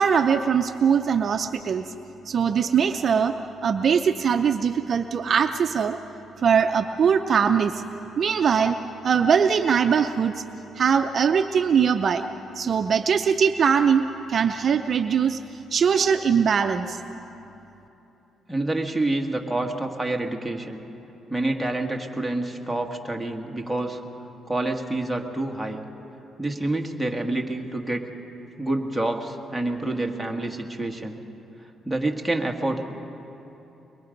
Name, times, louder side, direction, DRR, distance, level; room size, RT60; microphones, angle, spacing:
voice 1, 0.0-1.9 2.3-6.0 6.4-10.4 10.8-12.2 12.6-14.0 14.3-15.4 15.7-17.0, right 7 dB, 50° right, 8 dB, 0.6 m, -21 dB
voice 2, 18.5-20.8 21.3-24.0 24.5-25.8 26.4-28.1 28.6-31.2 31.8-32.9, right 2 dB, ahead, 0 dB, 1.7 m, -27 dB
23.0 x 22.5 x 5.3 m, 3.0 s
cardioid pair, 90°, 0 cm